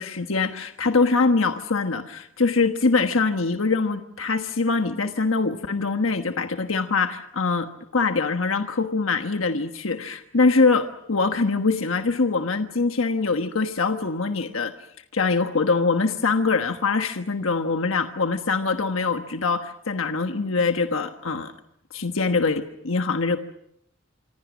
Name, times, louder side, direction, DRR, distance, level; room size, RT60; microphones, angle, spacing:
voice 1, 0.0-14.7 15.1-21.5 21.9-23.4, left 4 dB, 85° left, 7 dB, 1.3 m, -23 dB
27.0 x 25.5 x 6.3 m, 0.77 s
head